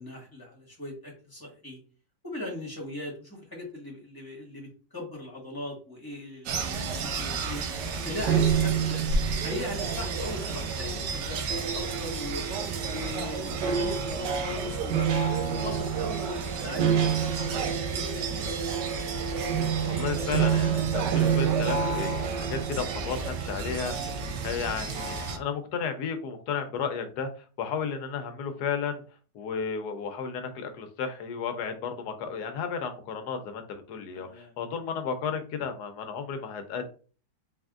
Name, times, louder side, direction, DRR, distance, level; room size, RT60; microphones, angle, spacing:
voice 1, 0.0-1.8 2.2-7.6 8.0-9.0 9.4-12.5 12.8-18.5 34.1-34.5, left 1 dB, 15° left, -3 dB, 1.5 m, -39 dB
sound 1, 6.5-25.4, right 6 dB, 85° right, 1.3 m, -28 dB
voice 2, 19.8-27.3 27.6-29.0 29.3-36.9, left 6 dB, 75° left, 7 dB, 1.2 m, -33 dB
3.8 x 3.4 x 2.4 m, 0.38 s
omnidirectional pair, 1.8 m